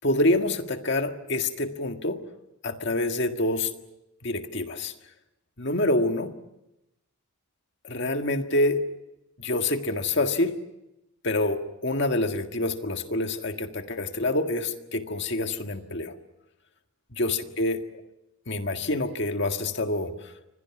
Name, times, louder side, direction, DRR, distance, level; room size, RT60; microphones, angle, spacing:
voice 1, 0.0-2.2 2.6-3.7 4.2-4.9 5.6-6.3 7.8-8.8 9.4-10.6 11.2-16.1 17.1-17.9 18.5-20.3, left 2 dB, 50° left, 6 dB, 1.8 m, -26 dB
29.0 x 25.0 x 6.1 m, 0.91 s
head